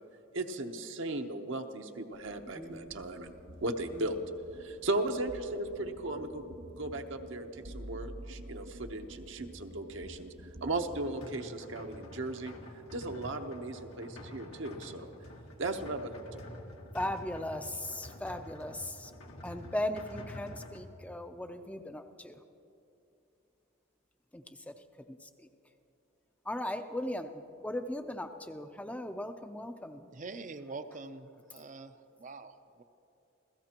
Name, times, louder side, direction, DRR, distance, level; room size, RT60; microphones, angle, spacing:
voice 1, 0.3-3.3 3.6-4.2 4.6-6.4 6.8-10.3 10.6-12.5 12.9-15.1 15.6-16.4, right 2 dB, 60° right, 5 dB, 0.9 m, -36 dB
sound 1, 2.1-11.1, equal, 85° right, 2.3 m, -49 dB
voice 2, 2.5-3.0 3.9-4.1 16.9-19.1 19.4-22.4 24.3-25.5 26.4-30.1, left 1 dB, 5° left, 7 dB, 0.6 m, -38 dB
sound 2, 10.9-20.8, left 1 dB, 85° left, 1.9 m, -48 dB
voice 3, 30.1-32.8, right 3 dB, 35° right, 10 dB, 0.6 m, -45 dB
28.5 x 16.5 x 3.0 m, 2.8 s
head